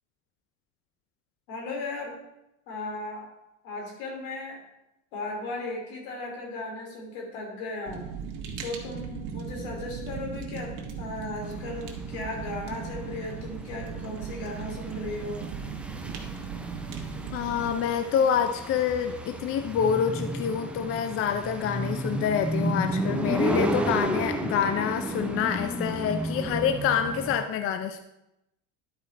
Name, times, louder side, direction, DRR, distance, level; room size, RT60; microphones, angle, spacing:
voice 1, 1.5-2.1 2.7-3.3 3.6-4.6 5.1-8.0 8.6-15.4, left 2 dB, 80° left, 0 dB, 3.2 m, -36 dB
Fire, 7.9-17.7, right 6 dB, 55° right, 1.5 m, -37 dB
sound 1, 11.5-27.3, right 1 dB, 5° right, 0.6 m, -32 dB
voice 2, 17.3-28.0, left 8 dB, 35° left, 8 dB, 0.5 m, -27 dB
11.0 x 4.9 x 4.2 m, 0.88 s
supercardioid pair, 125°, 38 cm